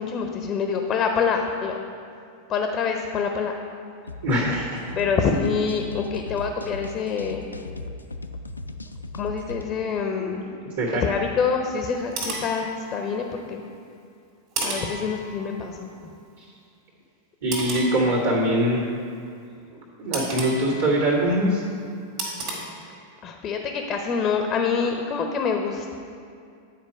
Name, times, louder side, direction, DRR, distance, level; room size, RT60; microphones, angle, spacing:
voice 1, 0.0-1.7 2.5-3.5 5.0-7.4 9.2-10.6 11.0-13.6 14.6-15.9 23.2-25.9, left 5 dB, 30° left, 4 dB, 0.6 m, -26 dB
sound 1, 4.1-9.6, left 2 dB, 80° left, 0.3 m, -37 dB
voice 2, 4.2-5.0 10.1-10.3 10.8-11.0 16.4-16.5 17.4-18.8 20.0-21.6, right 1 dB, 70° right, -10 dB, 1.9 m, -23 dB
sound 2, 11.9-13.4 14.5-15.8 17.5-18.8 20.1-21.4 22.2-22.5, right 2 dB, 45° right, 2.0 m, -33 dB
9.3 x 4.5 x 5.2 m, 2.3 s
figure-of-eight pair, 90°, 0 cm